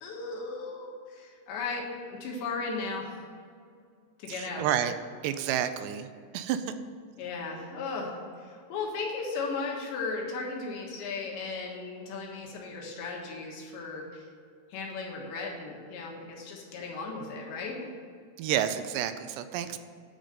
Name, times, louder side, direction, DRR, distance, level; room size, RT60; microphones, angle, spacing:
voice 1, 0.0-3.2 4.2-4.7 7.2-14.3 14.7-17.9, left 4 dB, 90° left, -1 dB, 3.9 m, -36 dB
voice 2, 4.3-5.0 5.2-6.1 6.3-6.8 18.4-19.8, right 10 dB, 85° right, 10 dB, 2.7 m, -30 dB
9.9 x 5.3 x 8.1 m, 2.2 s
omnidirectional pair, 5.0 m